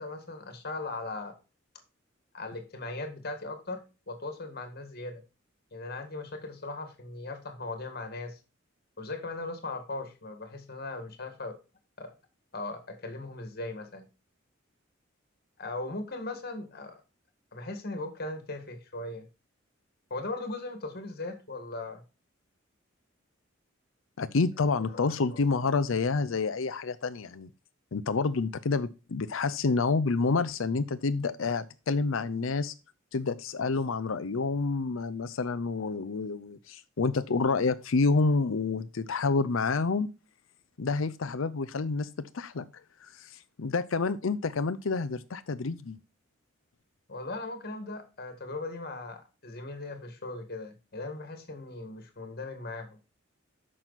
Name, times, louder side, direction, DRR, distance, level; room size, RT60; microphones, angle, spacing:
voice 1, 0.0-1.4 2.3-5.2 5.7-8.4 9.0-11.6 12.0-12.1 12.5-14.1 15.6-17.0 17.5-19.3 20.1-22.0 24.9-25.4 47.1-53.0, left 2 dB, 50° left, 1.8 m, -38 dB
voice 2, 24.2-27.5 27.9-32.7 33.1-40.1 40.8-42.6 43.0-46.0, left 4 dB, 85° left, 0.6 m, -28 dB
8.9 x 6.2 x 4.1 m
head